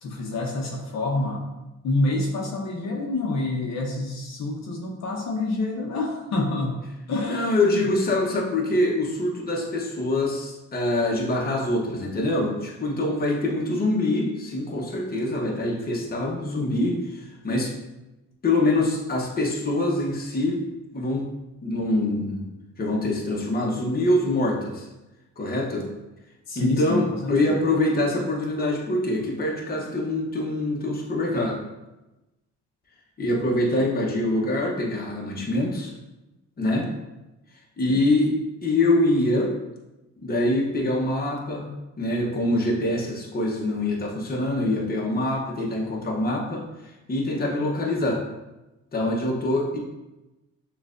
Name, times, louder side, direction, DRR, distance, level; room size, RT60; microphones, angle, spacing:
voice 1, 0.0-1.4 1.8-7.9 26.5-27.6 37.9-38.0, left 2 dB, 60° left, 0 dB, 0.8 m, -27 dB
voice 2, 7.3-17.7 18.4-20.6 20.9-21.3 21.6-22.5 22.8-24.9 25.4-25.9 26.5-31.6 33.2-35.9 36.6-36.9 37.8-38.3 38.6-39.5 40.2-46.6 47.1-48.2 48.9-49.8, left 1 dB, 30° left, -1 dB, 0.9 m, -24 dB
6.4 x 2.4 x 2.5 m, 1.0 s
cardioid pair, 90°, 30 cm